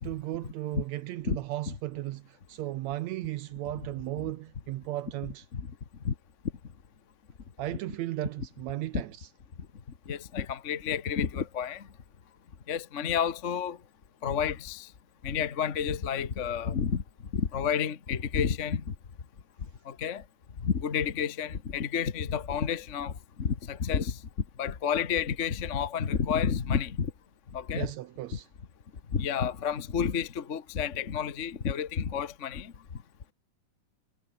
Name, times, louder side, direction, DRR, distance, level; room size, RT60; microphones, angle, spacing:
voice 1, 0.0-5.4 7.6-9.1 27.7-28.5, right 15 dB, 75° right, 1.7 m, -35 dB
voice 2, 10.0-11.9 12.7-13.8 14.2-14.9 15.2-17.0 17.3-18.9 19.8-20.2 20.6-24.2 24.6-27.1 27.5-27.9 29.1-32.7, left 7 dB, 40° left, 1.0 m, -30 dB
omnidirectional pair, 3.7 m